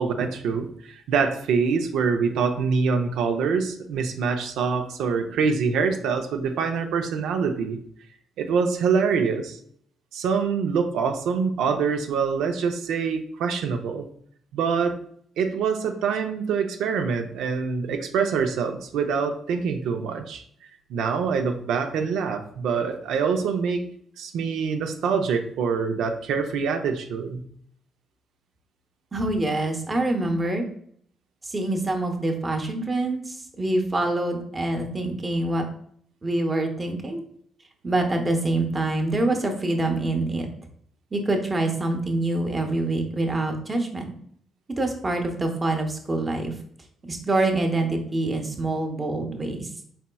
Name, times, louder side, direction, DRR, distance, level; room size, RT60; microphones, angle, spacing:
voice 1, 0.0-7.8 8.4-9.6 10.1-14.1 14.5-15.0 15.4-20.4 20.9-23.9 24.2-27.4, right 5 dB, 85° right, 5 dB, 0.5 m, -25 dB
voice 2, 29.1-30.7 31.4-35.7 36.2-37.2 37.8-40.5 41.1-44.1 44.8-46.5 47.0-49.7, right 2 dB, 25° right, 4 dB, 0.9 m, -25 dB
4.3 x 4.2 x 2.2 m, 0.63 s
cardioid pair, 90°, 0 cm